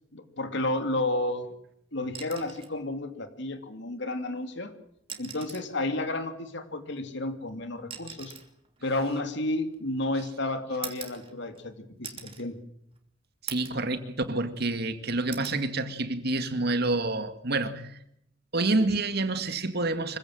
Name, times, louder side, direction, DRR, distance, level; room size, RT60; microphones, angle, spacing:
voice 1, 0.1-1.5 1.9-4.7 5.2-8.3 8.8-12.5, left 2 dB, 65° left, 2.8 m, -31 dB
sound 1, 2.1-2.8 4.2-4.3 5.0-5.8 6.9-10.0 10.8-11.7 12.0-12.5 12.9-13.0 13.5-13.9 14.3-14.9 15.3-15.6 17.1-17.3, right 7 dB, 30° right, 3.1 m, -43 dB
voice 2, 13.4-18.0 18.5-20.2, right 2 dB, 55° right, 2.1 m, -28 dB
25.5 x 16.0 x 7.8 m
head